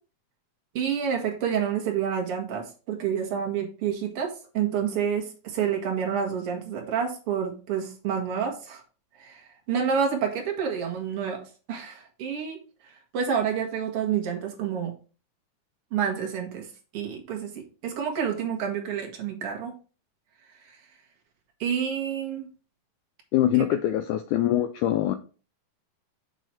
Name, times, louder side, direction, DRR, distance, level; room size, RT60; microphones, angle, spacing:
voice 1, 0.7-8.8 9.2-9.4 9.7-12.6 13.1-14.9 15.9-16.7 16.9-19.7 21.6-22.5 23.6-23.7, right 7 dB, 50° right, 2.0 m, -28 dB
voice 2, 23.3-25.2, left 12 dB, 85° left, 1.7 m, -23 dB
7.5 x 4.0 x 4.3 m
omnidirectional pair, 4.0 m